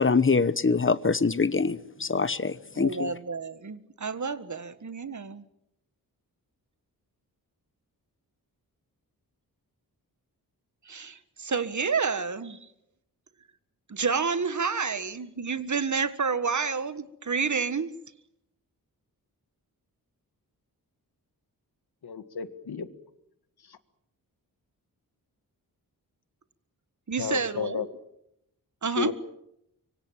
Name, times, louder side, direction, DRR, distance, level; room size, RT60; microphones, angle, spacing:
voice 1, 0.0-3.1, left 4 dB, 35° left, 16 dB, 1.0 m, -24 dB
voice 2, 2.7-5.4 10.8-12.6 13.9-17.9 27.1-27.9 28.8-29.1, right 5 dB, 50° right, 12 dB, 1.6 m, -29 dB
voice 3, 22.0-22.9 23.7-23.8 27.2-27.9 29.0-29.1, left 7 dB, 85° left, 11 dB, 1.8 m, -32 dB
25.0 x 25.0 x 7.4 m, 0.80 s
wide cardioid pair, 95°, 37 cm